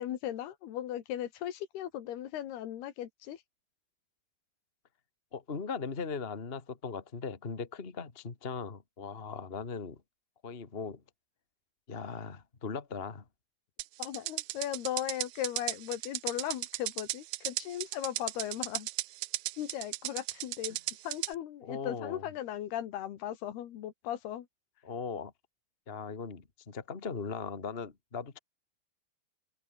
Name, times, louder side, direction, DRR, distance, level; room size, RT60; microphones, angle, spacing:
voice 1, 0.0-3.4 14.0-18.9 19.6-20.8 21.0-24.5, left 11 dB, 75° left, 3.6 m, -37 dB
voice 2, 5.3-10.0 10.4-11.0 11.9-13.2 21.6-22.2 24.8-25.3 25.9-28.4, left 5 dB, 30° left, 1.1 m, -39 dB
sound 1, 13.8-21.3, right 19 dB, 75° right, 2.2 m, -35 dB
open air
omnidirectional pair, 4.7 m